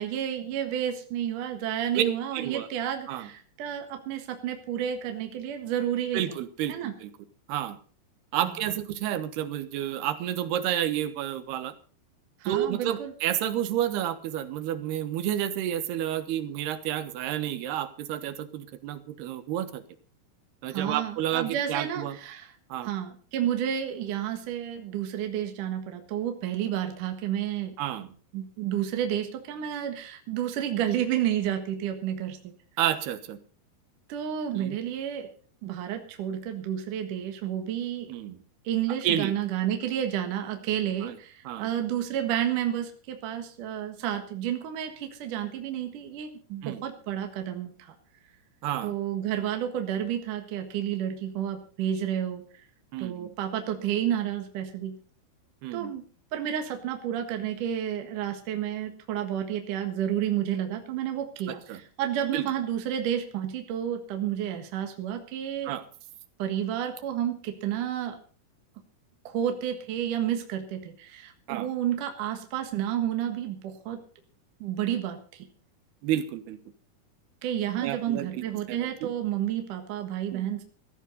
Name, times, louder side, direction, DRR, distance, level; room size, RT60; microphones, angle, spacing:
voice 1, 0.0-6.4 6.7-6.9 8.4-8.5 12.4-13.1 20.7-22.5 22.8-27.7 28.3-32.4 34.1-35.3 35.6-38.1 38.6-47.9 48.8-52.4 53.0-54.9 55.7-56.0 56.3-65.7 66.4-68.2 69.2-74.0 74.6-75.5 77.4-80.6, right 10 dB, 60° right, 6 dB, 2.9 m, -30 dB
voice 2, 1.9-2.7 3.1-3.3 6.1-7.1 7.5-7.8 8.3-11.7 12.4-19.8 20.6-22.2 22.7-22.9 27.8-28.1 32.8-33.4 34.5-34.8 38.1-38.4 39.0-39.3 41.0-41.2 41.4-41.7 46.6-46.8 48.6-48.9 52.9-53.3 55.6-55.9 61.7-61.8 62.3-62.5 65.6-65.8 71.5-71.7 76.0-76.6 77.8-78.4 78.7-79.1 80.3-80.5, right 11 dB, 80° right, 11 dB, 3.2 m, -30 dB
16.5 x 14.0 x 4.1 m, 0.42 s
omnidirectional pair, 4.7 m